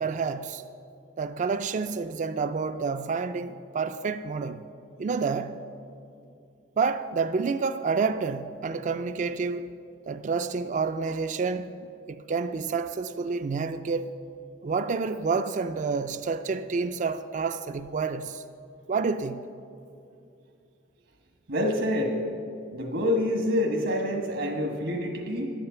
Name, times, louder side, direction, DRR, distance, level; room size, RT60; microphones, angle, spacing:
voice 1, 0.0-0.6 1.2-4.6 5.0-5.6 6.8-9.7 10.1-11.7 12.1-14.1 14.6-18.4 18.9-19.4, right 4 dB, 40° right, 0.3 m, -29 dB
voice 2, 21.5-22.1 22.7-25.5, left 1 dB, 75° right, 1.4 m, -27 dB
11.5 x 8.8 x 8.1 m
head